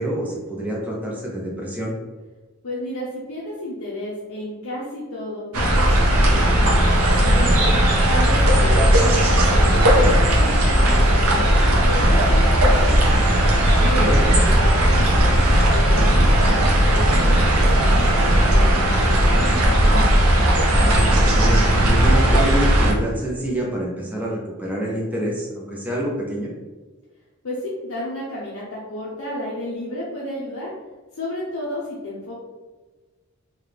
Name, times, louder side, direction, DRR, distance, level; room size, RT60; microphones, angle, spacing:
voice 1, 0.0-1.9 13.8-14.2 20.7-26.5, right 1 dB, 5° right, -4 dB, 0.5 m, -27 dB
voice 2, 2.6-5.8 6.1-7.7 8.0-11.6 11.8-13.0 13.6-16.6 16.9-19.4 27.4-30.7 31.1-32.3, left 1 dB, 70° left, -5 dB, 0.6 m, -32 dB
sound 1, 5.5-22.9, right 1 dB, 85° right, 0.7 m, -16 dB
3.6 x 2.3 x 3.2 m, 1.3 s
head